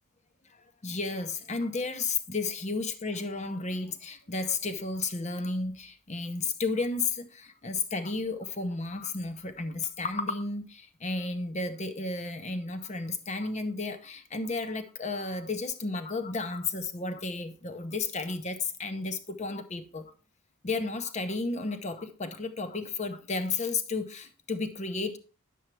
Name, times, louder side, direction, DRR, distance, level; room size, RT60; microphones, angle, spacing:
voice 1, 0.8-20.1 20.6-25.2, left 3 dB, 35° left, 0.8 m, -33 dB
9.3 x 7.1 x 3.3 m
head